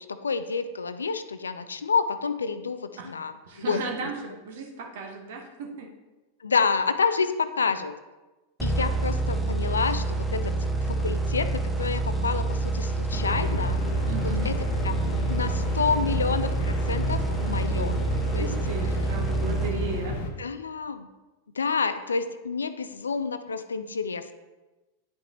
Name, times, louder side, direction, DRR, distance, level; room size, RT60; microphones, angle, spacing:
voice 1, 0.0-3.3 3.6-4.1 6.4-8.0 8.6-10.5 10.9-13.8 14.2-15.0 15.3-18.0 18.3-18.5 20.4-21.1 21.6-24.3, left 5 dB, 75° left, 11 dB, 0.4 m, -29 dB
voice 2, 3.4-5.9 14.0-14.5 17.4-18.0 18.3-20.2, right 3 dB, 55° right, 2 dB, 1.3 m, -35 dB
sound 1, 8.6-20.3, right 2 dB, ahead, 0.9 m, -27 dB
sound 2, 13.1-20.3, left 2 dB, 50° left, 0.9 m, -33 dB
10.0 x 5.2 x 3.0 m, 1.1 s
figure-of-eight pair, 90°, 0 cm